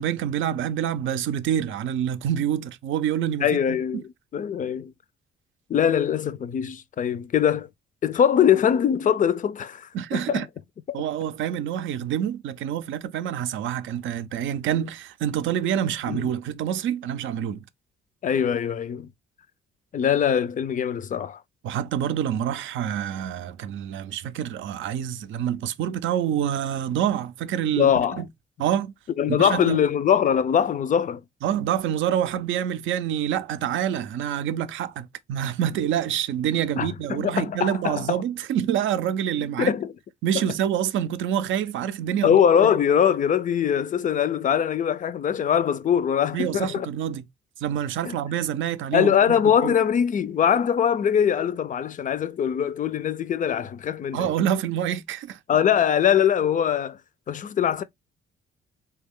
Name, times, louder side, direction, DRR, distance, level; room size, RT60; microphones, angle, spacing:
voice 1, 0.0-4.0 9.9-10.5 10.9-17.6 21.6-28.3 28.6-28.9 29.3-29.8 31.4-39.7 40.2-42.8 46.3-47.2 47.6-49.2 49.6-49.8 54.1-55.4, right 10 dB, 75° right, 0.5 m, -27 dB
voice 2, 3.4-4.0 4.3-4.9 5.7-7.7 8.0-10.4 10.9-11.0 16.1-16.3 18.2-19.1 19.9-21.4 27.7-28.2 29.2-31.2 36.8-38.2 39.6-39.9 40.3-40.4 42.2-46.9 48.0-48.1 48.9-54.3 55.5-57.0 57.3-57.8, left 8 dB, 40° left, 0.4 m, -22 dB
3.2 x 2.3 x 3.5 m
cardioid pair, 90°, 20 cm